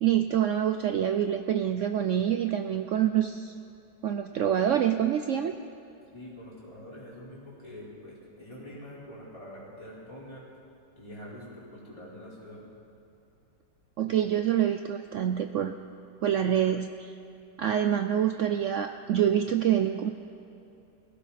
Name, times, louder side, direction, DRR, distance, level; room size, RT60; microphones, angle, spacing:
voice 1, 0.0-3.5 4.0-5.5 14.0-15.7 16.2-17.1 17.6-20.1, right 10 dB, 80° right, 8 dB, 0.6 m, -26 dB
voice 2, 6.1-10.5 11.0-12.6, equal, 20° left, -8 dB, 4.3 m, -45 dB
20.0 x 16.5 x 4.2 m, 2.8 s
omnidirectional pair, 1.9 m